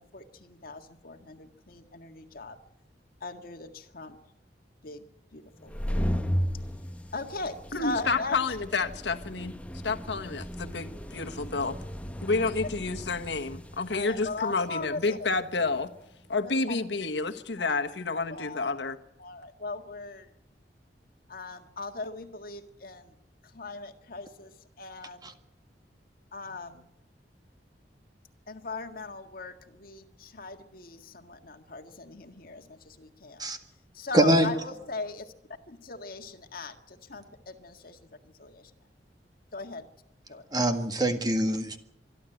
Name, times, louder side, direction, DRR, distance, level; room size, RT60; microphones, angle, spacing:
voice 1, 0.0-2.6 3.2-4.2 4.8-5.1 5.3-6.0 7.1-8.3 13.9-15.3 16.4-16.8 17.6-17.9 18.3-18.7 19.2-20.3 21.3-23.1 23.4-25.3 26.3-26.9 28.5-33.5 33.9-35.3 35.7-38.7 39.5-39.9 40.3-40.4, left 3 dB, 55° left, 5 dB, 1.8 m, -39 dB
sound 1, 5.5-16.0, equal, 10° left, 1.0 m, -36 dB
voice 2, 7.7-9.6 9.8-11.8 12.2-15.9 16.3-19.0, left 3 dB, 80° left, 6 dB, 1.3 m, -29 dB
voice 3, 34.1-34.5 40.5-41.8, right 1 dB, 25° right, 7 dB, 1.7 m, -23 dB
25.0 x 11.5 x 9.0 m, 0.81 s
head